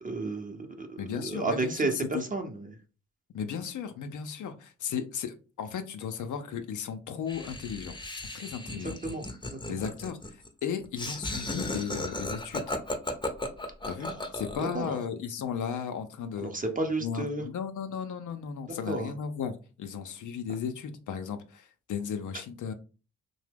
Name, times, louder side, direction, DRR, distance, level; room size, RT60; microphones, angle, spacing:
voice 1, 0.0-2.8 8.7-9.8 14.0-14.2 14.6-15.0 16.4-17.4 18.9-19.1, right 2 dB, 25° right, 5 dB, 0.8 m, -32 dB
voice 2, 1.0-2.2 3.3-8.0 8.3-9.0 9.7-12.8 13.8-16.5 17.0-22.7, left 7 dB, 60° left, 7 dB, 0.6 m, -35 dB
Laughter, 7.3-14.9, left 1 dB, 15° left, 0.7 m, -36 dB
2.8 x 2.1 x 3.4 m, 0.34 s
hypercardioid pair, 40°, 34 cm